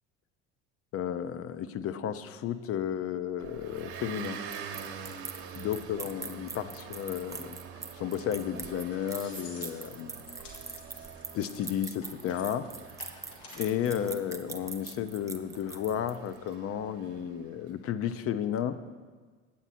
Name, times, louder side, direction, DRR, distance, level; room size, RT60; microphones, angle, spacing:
voice 1, 0.9-4.4 5.6-7.6 8.0-10.1 11.3-12.7 13.6-18.8, left 9 dB, 40° left, 12 dB, 0.5 m, -33 dB
Motor vehicle (road) / Engine, 3.4-17.6, right 7 dB, 40° right, 0.9 m, -46 dB
sound 1, 3.8-16.4, right 3 dB, 10° right, 0.5 m, -42 dB
sound 2, 8.9-14.1, left 3 dB, 65° left, 1.9 m, -52 dB
8.6 x 7.9 x 4.2 m, 1.5 s
hypercardioid pair, 70°, 35 cm